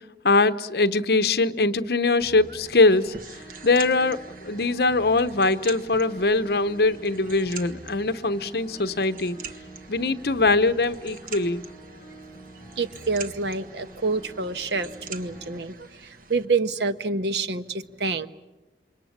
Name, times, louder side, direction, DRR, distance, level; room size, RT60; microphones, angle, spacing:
voice 1, 0.0-3.2 3.6-9.4 9.9-11.7, left 3 dB, 60° left, 0.9 m, -22 dB
sound 1, 2.2-15.6, right 1 dB, 35° left, 4.4 m, -47 dB
sound 2, 2.2-16.4, right 5 dB, 50° right, 1.5 m, -44 dB
voice 2, 12.8-18.3, right 3 dB, 75° right, 1.1 m, -27 dB
28.5 x 24.5 x 7.3 m
head